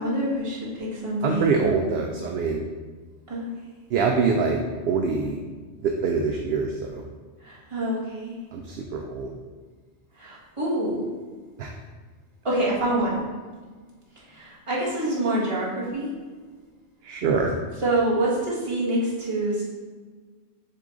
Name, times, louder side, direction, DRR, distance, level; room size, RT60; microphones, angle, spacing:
voice 1, 0.0-1.7 3.3-3.5 7.4-8.4 10.2-11.1 12.4-13.2 14.3-16.1 17.8-19.6, right 1 dB, 25° right, -7 dB, 1.7 m, -26 dB
voice 2, 1.2-2.6 3.9-5.4 5.8-7.0 8.5-9.4 11.6-11.7 17.0-17.6, right 4 dB, 65° right, 2 dB, 0.7 m, -24 dB
6.8 x 3.7 x 3.8 m, 1.4 s
omnidirectional pair, 1.3 m